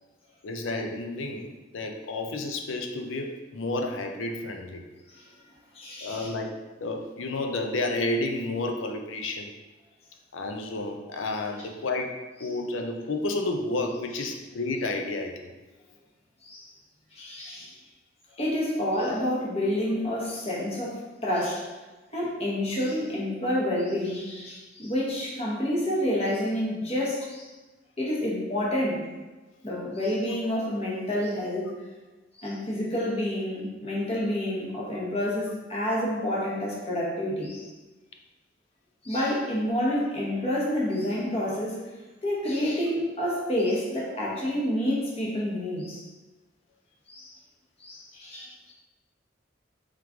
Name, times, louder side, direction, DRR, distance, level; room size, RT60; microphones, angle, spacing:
voice 1, 0.4-4.8 6.0-9.5 10.3-15.5, left 2 dB, 90° left, 4 dB, 0.5 m, -31 dB
voice 2, 5.7-6.3 11.3-11.4 14.1-14.2 16.4-16.7 17.1-17.7 18.3-21.7 22.1-27.5 28.0-29.1 29.6-31.7 32.3-37.7 39.0-41.8 42.2-46.1 47.1-47.3 47.8-48.7, left 1 dB, 30° left, -5 dB, 1.0 m, -29 dB
3.6 x 3.1 x 3.5 m, 1.2 s
head